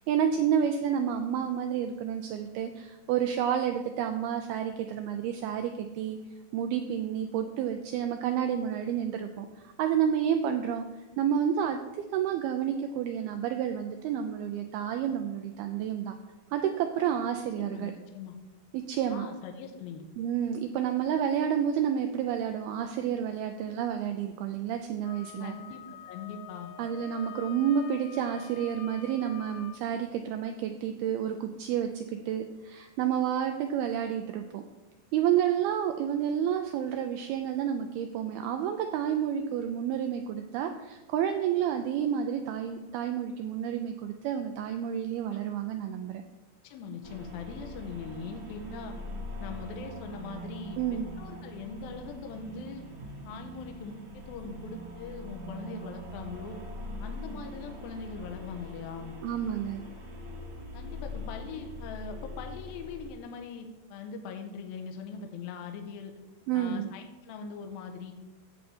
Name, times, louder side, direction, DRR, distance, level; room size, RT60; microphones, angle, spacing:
voice 1, 0.1-6.2 6.5-10.8 11.2-16.2 16.5-17.9 18.7-19.3 20.2-25.6 26.8-34.6 35.1-46.2 50.8-51.1 59.2-59.8 66.5-66.9, right 9 dB, 85° right, 5 dB, 2.3 m, -30 dB
voice 2, 17.6-18.4 19.1-20.1 25.4-25.8 26.1-26.7 45.3-45.4 46.6-49.0 49.4-52.9 53.3-56.6 57.0-59.2 60.7-66.1 66.5-68.1, left 5 dB, 75° left, 4 dB, 2.4 m, -41 dB
Wind instrument woodwind instrument, 25.0-29.8, left 9 dB, 90° left, 2.9 m, -46 dB
sound 1, 47.0-63.1, left 1 dB, 55° right, 1.1 m, -42 dB
11.0 x 7.7 x 4.3 m, 1.1 s
omnidirectional pair, 5.0 m